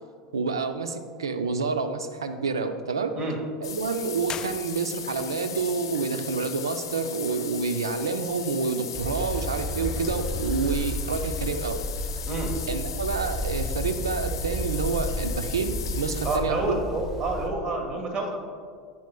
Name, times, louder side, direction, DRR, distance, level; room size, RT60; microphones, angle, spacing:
voice 1, 0.3-3.1 3.6-11.8 12.7-16.8, right 4 dB, 80° right, 9 dB, 0.5 m, -28 dB
sound 1, 3.6-16.4, left 8 dB, 75° left, 0.7 m, -37 dB
sound 2, 4.2-5.3, left 8 dB, 30° left, 0.3 m, -39 dB
sound 3, 8.9-17.5, equal, 15° right, 1.3 m, -32 dB
voice 2, 16.2-18.4, right 2 dB, 35° right, 2 dB, 1.5 m, -28 dB
10.0 x 8.6 x 2.3 m, 2.1 s
figure-of-eight pair, 80°, 2 cm